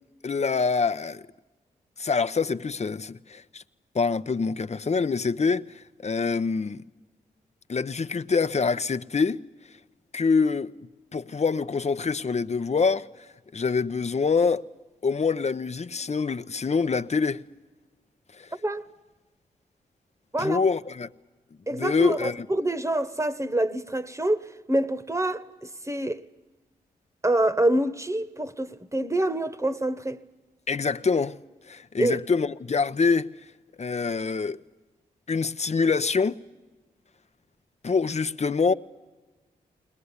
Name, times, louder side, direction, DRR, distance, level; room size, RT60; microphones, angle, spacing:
voice 1, 0.2-1.2 2.0-3.6 3.9-6.8 7.7-9.4 10.1-10.7 11.1-13.1 13.5-14.6 15.0-17.4 18.4-18.5 20.4-21.1 21.7-22.5 30.7-31.4 31.7-33.3 33.8-34.6 35.3-36.4 37.8-38.7, left 5 dB, 40° left, 0.9 m, -25 dB
voice 2, 21.7-26.2 27.2-30.2 32.0-32.2, right 1 dB, 15° right, 1.3 m, -26 dB
21.5 x 19.5 x 9.8 m
supercardioid pair, 45°, 17 cm